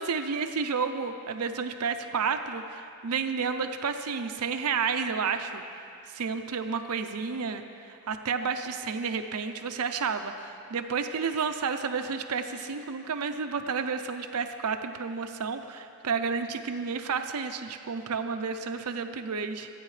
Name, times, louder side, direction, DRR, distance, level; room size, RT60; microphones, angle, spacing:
voice 1, 0.0-5.6 6.1-19.7, right 5 dB, 85° right, 7 dB, 0.6 m, -31 dB
27.0 x 9.2 x 3.3 m, 2.5 s
head